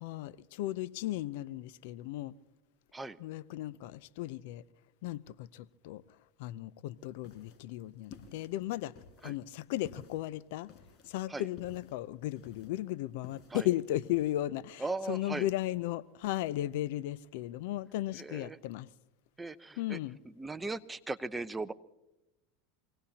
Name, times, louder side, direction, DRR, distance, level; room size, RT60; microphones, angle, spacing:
voice 1, 0.0-2.3 3.2-4.6 5.0-6.0 6.4-8.9 9.2-10.7 11.1-18.9 19.8-20.2, left 14 dB, 70° left, 0.6 m, -36 dB
sound 1, 7.0-14.4, left 6 dB, 50° left, 5.0 m, -55 dB
voice 2, 14.8-15.5 18.2-18.6 19.4-20.0 20.2-21.7, right 3 dB, 10° right, 0.8 m, -38 dB
27.0 x 18.0 x 2.9 m
hypercardioid pair, 95°, 0 cm